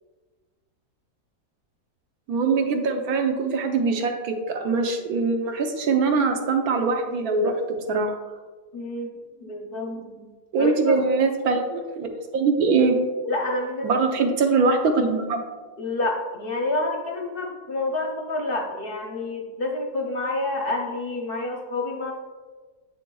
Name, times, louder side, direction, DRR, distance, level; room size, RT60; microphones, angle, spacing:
voice 1, 2.3-7.6 7.9-8.2 10.5-12.1 12.3-13.0 13.8-15.4, right 4 dB, 70° right, 4 dB, 1.2 m, -22 dB
voice 2, 8.7-9.1 9.4-10.3 10.6-11.0 13.2-13.9 15.8-22.1, left 2 dB, 50° left, 1 dB, 0.7 m, -28 dB
7.7 x 6.3 x 2.3 m, 1.4 s
omnidirectional pair, 1.7 m